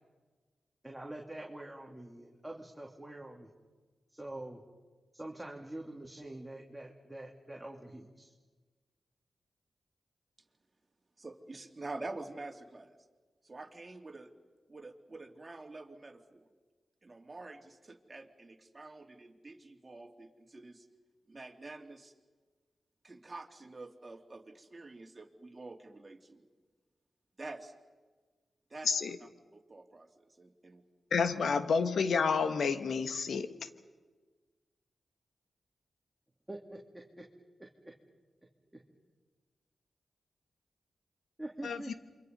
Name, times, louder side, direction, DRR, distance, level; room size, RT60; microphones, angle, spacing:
voice 1, 0.8-3.5 4.1-4.6 5.1-8.3 36.5-36.8 37.2-37.3 37.6-37.7 41.4-41.9, right 1 dB, 10° right, -1 dB, 3.0 m, -45 dB
voice 2, 11.2-12.9 13.4-14.3 14.7-16.5 17.0-20.9 21.3-22.1 23.0-26.4 27.4-27.7 28.7-28.9 29.5-30.8 31.1-31.3 31.5-31.6, right 2 dB, 35° right, 3 dB, 3.0 m, -47 dB
voice 3, 28.9-29.2 31.1-33.5 41.6-41.8, left 5 dB, 80° left, 10 dB, 1.4 m, -29 dB
28.0 x 25.0 x 5.5 m, 1.4 s
cardioid pair, 50°, 0 cm